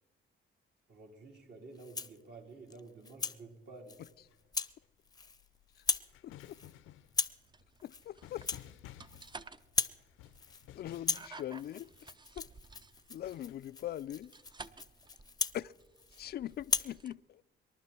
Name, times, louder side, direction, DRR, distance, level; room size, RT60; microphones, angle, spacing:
voice 1, 0.9-4.0, right 3 dB, 60° right, 3.9 m, -51 dB
Rattle (instrument), 1.8-2.2 2.7-3.4 3.9-4.1 4.5-4.8 5.1-5.5 5.7-6.1 6.4-6.7 7.1-7.5 7.8-8.1 8.3-9.3 9.6-10.0 10.3-10.7 10.9-16.3 16.6-17.0, left 4 dB, 20° left, 0.7 m, -37 dB
sound 1, 3.9-12.3 13.0-14.2, left 12 dB, 90° left, 0.7 m, -55 dB
voice 2, 6.2-6.6 7.8-8.4 10.7-11.9 12.4-12.5 13.1-14.3 15.5-15.7 16.2-17.4, left 12 dB, 55° left, 0.4 m, -41 dB
sound 2, 7.4-17.1, right 3 dB, 20° right, 0.6 m, -54 dB
26.0 x 12.0 x 4.4 m
cardioid pair, 90°, 20 cm